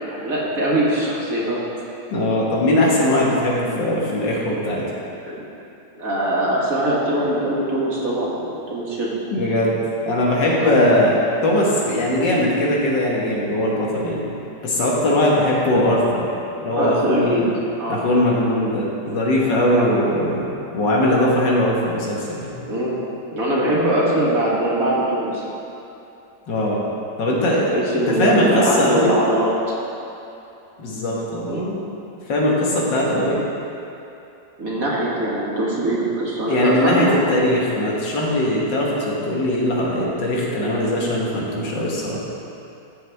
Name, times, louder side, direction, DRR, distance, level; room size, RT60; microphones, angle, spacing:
voice 1, 0.0-1.6 4.5-4.6 5.3-5.4 6.0-9.1 10.6-10.8 15.1-15.2 16.8-17.5 17.8-18.0 19.4-20.0 22.7-23.0 23.3-25.4 27.7-29.5 31.5-31.7 34.6-37.6, right 1 dB, 50° right, -5 dB, 2.0 m, -22 dB
voice 2, 2.1-4.8 9.3-9.8 10.1-14.2 14.6-16.2 16.6-17.5 17.9-22.5 26.5-26.8 27.2-27.7 28.1-29.1 30.8-31.5 32.3-33.4 36.4-42.2, left 1 dB, 85° left, -4 dB, 2.2 m, -20 dB
14.0 x 7.1 x 3.5 m, 2.8 s
omnidirectional pair, 1.9 m